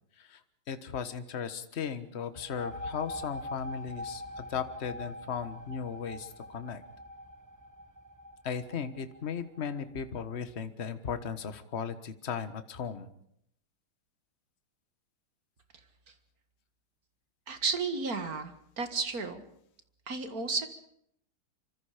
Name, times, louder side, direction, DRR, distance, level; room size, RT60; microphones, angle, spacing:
voice 1, 0.7-6.8 8.4-13.1, left 7 dB, 35° left, 11 dB, 1.4 m, -36 dB
sound 1, 2.3-9.8, left 1 dB, 15° right, 0.6 m, -43 dB
voice 2, 17.5-19.4 20.1-20.7, right 4 dB, 45° right, 9 dB, 2.1 m, -33 dB
27.0 x 25.0 x 5.1 m, 0.71 s
omnidirectional pair, 2.4 m